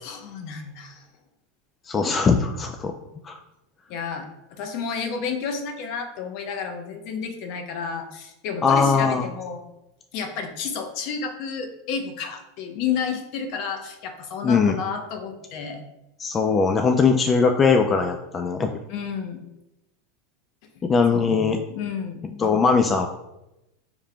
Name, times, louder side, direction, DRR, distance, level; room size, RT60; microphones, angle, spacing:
voice 1, 0.0-1.0 3.9-9.6 10.1-15.8 18.9-19.4 21.1-22.2, left 6 dB, 55° left, 5 dB, 0.7 m, -31 dB
voice 2, 1.9-2.9 3.2-3.4 8.6-9.3 14.4-14.8 16.2-18.8 20.8-21.6 22.4-23.1, left 5 dB, 25° left, 6 dB, 0.3 m, -20 dB
4.9 x 3.5 x 2.2 m, 0.91 s
supercardioid pair, 115°, 0 cm